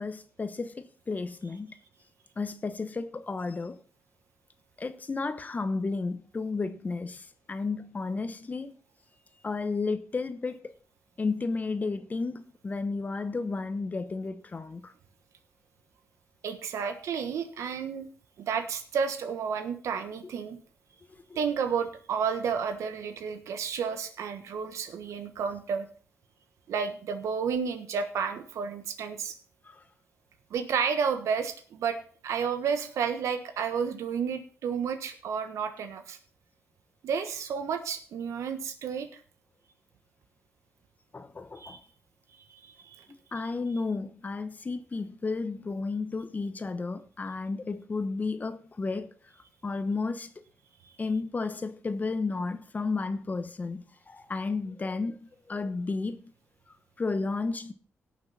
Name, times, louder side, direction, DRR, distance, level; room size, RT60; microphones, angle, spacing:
voice 1, 0.0-1.7 2.4-3.8 4.8-8.7 9.4-10.7 11.2-14.9 21.3-21.4 29.7-29.8 41.1-41.8 43.3-49.1 49.6-50.3 51.0-55.2 55.5-56.2 57.0-57.7, left 3 dB, 35° left, 1.0 m, -32 dB
voice 2, 16.4-18.1 18.4-20.6 21.3-25.9 26.7-29.3 30.5-32.0 32.2-36.2 37.0-39.1 41.6-41.8 42.6-43.0, right 6 dB, 85° right, 1.3 m, -31 dB
17.5 x 6.8 x 4.1 m
cardioid pair, 85°, 5 cm